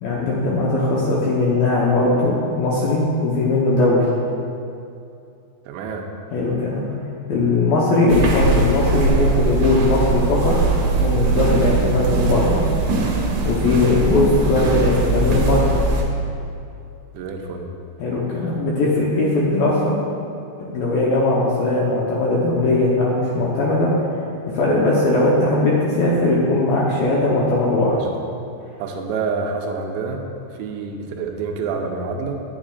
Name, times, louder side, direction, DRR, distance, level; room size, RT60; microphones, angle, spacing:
voice 1, 0.0-4.1 6.3-6.8 7.3-10.5 11.0-12.6 13.4-15.7 18.0-20.0 20.6-23.9 24.5-27.9, left 2 dB, 75° left, -5 dB, 2.2 m, -19 dB
voice 2, 5.7-6.1 13.7-13.9 17.1-17.7 27.9-28.1 28.8-32.3, right 4 dB, 85° right, 2 dB, 2.9 m, -28 dB
sound 1, 8.1-16.0, right 3 dB, 70° right, 2.8 m, -20 dB
10.5 x 9.6 x 2.4 m, 2.6 s
omnidirectional pair, 5.2 m